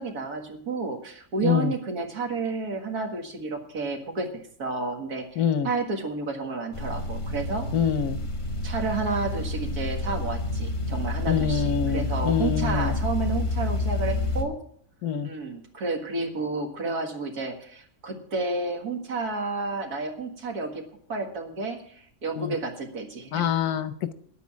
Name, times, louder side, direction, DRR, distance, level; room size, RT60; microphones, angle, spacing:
voice 1, 0.0-7.7 8.6-14.6 15.2-20.8 21.1-23.5, right 3 dB, 80° right, 3 dB, 2.3 m, -31 dB
voice 2, 1.4-1.7 5.4-5.7 7.7-8.2 11.3-12.9 15.0-15.3 22.4-22.5 23.3-24.1, left 8 dB, 85° left, 12 dB, 1.3 m, -25 dB
sound 1, 6.7-14.4, left 2 dB, 25° left, 1.0 m, -29 dB
9.6 x 8.5 x 8.4 m, 0.65 s
omnidirectional pair, 1.6 m